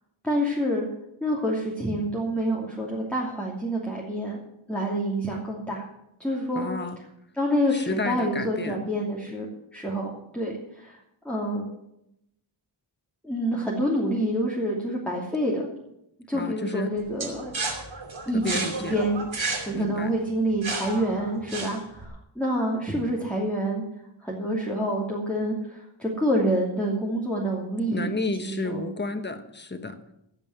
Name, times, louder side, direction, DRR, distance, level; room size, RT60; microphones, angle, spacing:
voice 1, 0.2-0.8 1.2-4.4 4.7-5.9 6.2-6.7 7.4-9.5 9.7-11.0 11.2-11.7 13.2-15.7 16.3-17.5 18.3-19.3 19.7-23.8 24.2-28.8, equal, 5° left, -4 dB, 2.8 m, -27 dB
voice 2, 6.5-7.0 7.7-8.8 16.3-16.9 18.3-19.0 19.7-20.1 27.9-30.0, left 3 dB, 20° left, 8 dB, 1.2 m, -32 dB
sound 1, 17.2-22.0, right 3 dB, 70° right, 3.0 m, -32 dB
16.0 x 5.4 x 9.6 m, 0.81 s
wide cardioid pair, 60°, 49 cm